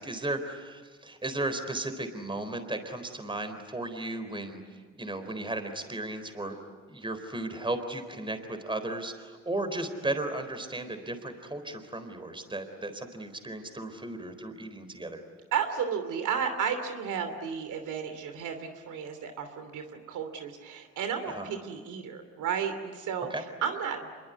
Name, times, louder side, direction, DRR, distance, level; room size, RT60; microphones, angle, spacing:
voice 1, 0.0-6.6 6.9-15.2 21.3-21.5 23.3-23.4, right 2 dB, 15° right, 8 dB, 4.0 m, -35 dB
voice 2, 15.5-23.3 23.6-24.1, right 7 dB, 80° right, 7 dB, 3.0 m, -33 dB
26.5 x 22.5 x 9.6 m, 1.5 s
cardioid pair, 90°, 30 cm